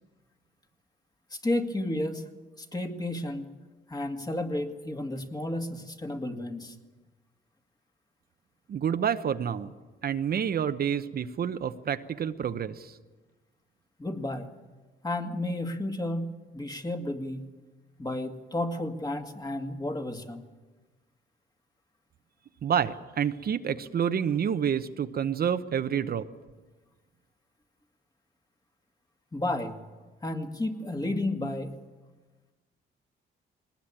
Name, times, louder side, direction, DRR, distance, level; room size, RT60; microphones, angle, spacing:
voice 1, 1.3-2.2 2.6-3.5 3.9-6.8 14.0-14.5 15.0-17.5 18.0-20.4 29.3-29.8 30.2-31.8, left 1 dB, 20° left, 5 dB, 2.1 m, -32 dB
voice 2, 8.7-9.7 10.0-13.0 22.6-26.3, right 8 dB, 50° right, 10 dB, 0.9 m, -28 dB
21.0 x 19.5 x 8.8 m, 1.3 s
cardioid pair, 90°, 20 cm